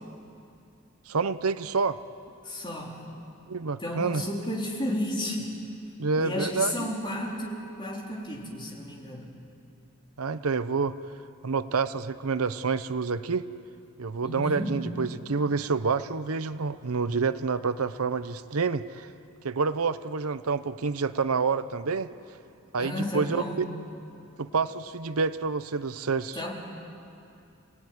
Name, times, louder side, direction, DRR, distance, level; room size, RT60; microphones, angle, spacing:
voice 1, 1.1-2.0 3.5-4.2 6.0-6.7 10.2-11.0 11.4-13.5 14.0-19.1 19.4-22.1 22.7-23.4 24.4-26.4, right 4 dB, 85° right, 13 dB, 0.8 m, -28 dB
voice 2, 2.4-3.0 3.8-5.5 6.2-9.2 14.2-14.8 22.8-23.6 26.3-26.5, left 1 dB, 20° left, -2 dB, 4.1 m, -32 dB
28.5 x 18.5 x 9.7 m, 2.7 s
head